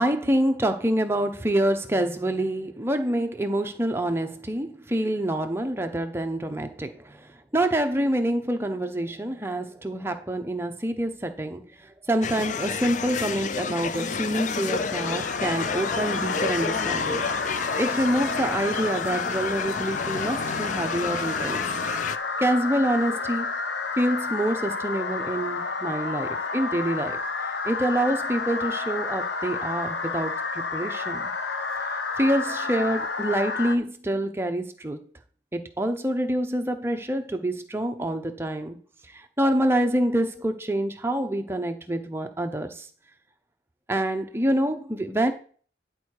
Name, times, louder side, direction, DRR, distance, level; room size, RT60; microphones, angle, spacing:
voice 1, 0.0-7.2 7.5-11.6 12.1-17.3 17.8-21.6 21.9-22.0 22.4-23.5 24.0-27.2 27.6-31.3 32.2-35.0 35.5-38.8 39.4-42.9 43.9-45.3, right 1 dB, 15° right, 6 dB, 0.7 m, -26 dB
sound 1, 12.2-22.2, left 5 dB, 40° left, 0.4 m, -30 dB
sound 2, 14.4-33.8, left 4 dB, 75° left, 0.8 m, -30 dB
10.0 x 4.4 x 4.7 m, 0.44 s
head